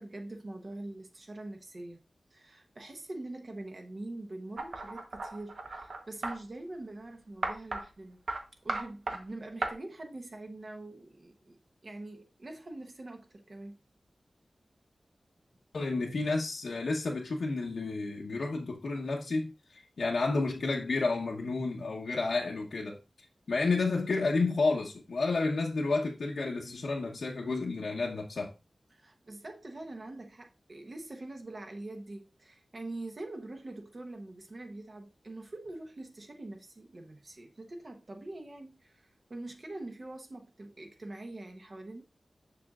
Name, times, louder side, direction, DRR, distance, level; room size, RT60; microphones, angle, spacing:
voice 1, 0.0-2.0 2.3-8.2 8.6-13.8 28.9-42.0, right 2 dB, 50° right, 1.0 m, -44 dB
sound 1, 4.6-6.4 7.4-7.8 8.3-8.4 8.7-9.2 9.6-9.7, right 3 dB, 70° right, 1.0 m, -35 dB
voice 2, 15.7-23.0 23.5-28.5, left 3 dB, 85° left, 0.9 m, -31 dB
6.8 x 6.3 x 2.4 m
wide cardioid pair, 85°, 0 cm